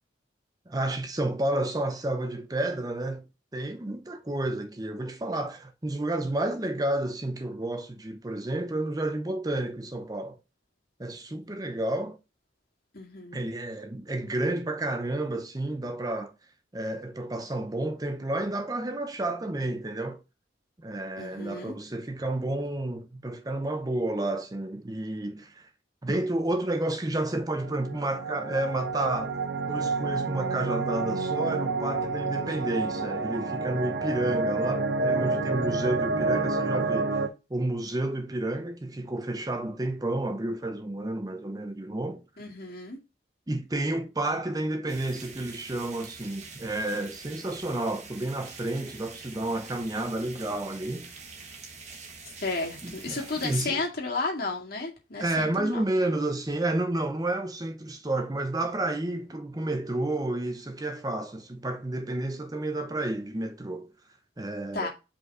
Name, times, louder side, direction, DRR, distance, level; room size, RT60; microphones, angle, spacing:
voice 1, 0.7-3.2 3.5-10.4 11.0-12.2 13.3-16.3 16.7-20.2 20.8-25.7 26.0-29.4 29.7-42.2 43.5-51.1 52.8-53.8 55.2-63.9 64.4-64.9, right 1 dB, 20° right, 0.6 m, -31 dB
voice 2, 12.9-13.4 21.2-21.7 42.4-43.0 52.4-55.8 64.7-64.9, left 3 dB, 50° left, 2.2 m, -33 dB
sound 1, 27.6-37.3, right 3 dB, 65° right, 0.9 m, -29 dB
sound 2, 44.9-53.7, right 4 dB, 35° right, 1.4 m, -45 dB
5.2 x 4.4 x 4.9 m
head